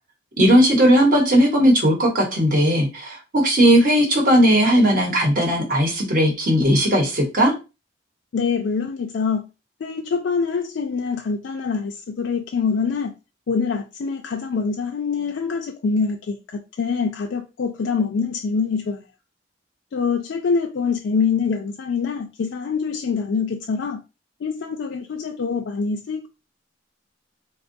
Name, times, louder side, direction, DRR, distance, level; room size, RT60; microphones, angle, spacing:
voice 1, 0.4-7.5, equal, 45° right, 0.9 m, -17 dB
voice 2, 8.3-9.5 9.8-13.1 13.5-19.0 19.9-24.0 24.4-26.3, left 5 dB, 70° left, 0.4 m, -25 dB
3.5 x 2.3 x 2.6 m
head